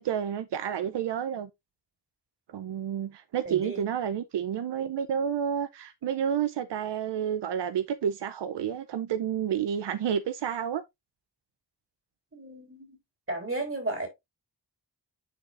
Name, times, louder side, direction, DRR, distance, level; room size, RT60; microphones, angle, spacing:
voice 1, 0.0-1.5 2.5-10.8, right 8 dB, 85° right, 0.6 m, -30 dB
voice 2, 3.4-3.9 12.3-13.0 13.3-14.1, right 2 dB, 30° right, 3.7 m, -34 dB
9.9 x 4.8 x 2.5 m
wide cardioid pair, 70°, 40 cm